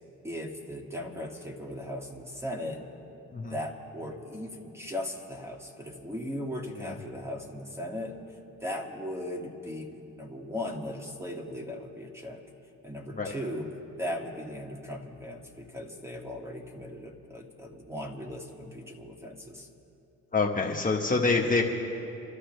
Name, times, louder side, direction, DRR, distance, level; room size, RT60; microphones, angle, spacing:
voice 1, 0.2-2.8 3.5-12.4 12.8-13.7 14.0-19.7, left 1 dB, 10° right, 1 dB, 1.9 m, -38 dB
voice 2, 20.3-21.6, left 3 dB, 25° left, 0 dB, 1.3 m, -26 dB
28.5 x 13.0 x 3.3 m, 2.8 s
cardioid pair, 90°, 30 cm